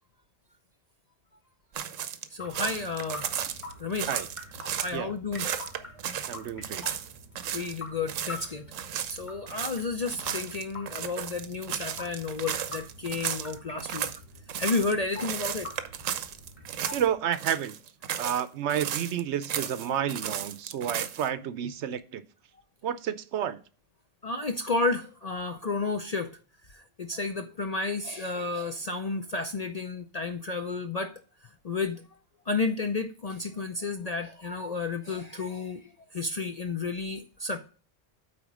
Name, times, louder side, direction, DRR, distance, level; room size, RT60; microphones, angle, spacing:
sound 1, 1.7-5.0 5.3-7.8 8.1-8.4 8.7-17.1 17.3-18.4 18.7-21.3, right 9 dB, 90° right, 1.1 m, -34 dB
voice 1, 2.3-3.3 3.8-4.2 4.8-5.5 7.5-8.6 9.1-14.1 14.6-15.7 24.2-26.3 26.7-32.0 32.5-37.6, left 3 dB, 50° left, 0.5 m, -32 dB
sound 2, 2.4-17.1, left 2 dB, 25° left, 3.6 m, -46 dB
voice 2, 6.3-6.8 16.9-17.7 18.2-22.2 22.8-23.6, right 9 dB, 70° right, 0.9 m, -30 dB
8.7 x 4.2 x 6.1 m
omnidirectional pair, 1.3 m